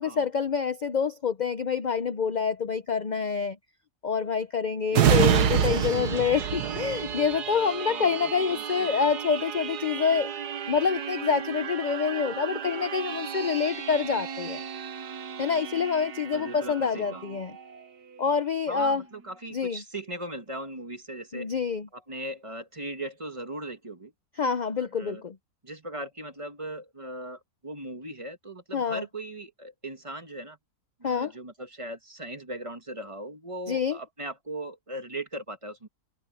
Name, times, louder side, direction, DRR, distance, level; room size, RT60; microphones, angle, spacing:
voice 1, 0.0-3.6 4.0-10.3 10.7-14.6 15.4-17.5 18.2-19.0 19.5-19.8 21.3-21.9 24.4-25.4 28.7-29.0 31.0-31.3 33.7-34.0, left 6 dB, 55° left, 0.5 m, -27 dB
sound 1, 4.9-18.2 18.7-18.8, right 8 dB, 90° right, 1.8 m, -30 dB
voice 2, 7.9-8.6 16.3-17.2 18.7-21.5 21.9-24.1 24.8-25.2 25.6-30.6 31.0-35.9, right 1 dB, 20° right, 1.5 m, -38 dB
omnidirectional pair, 1.7 m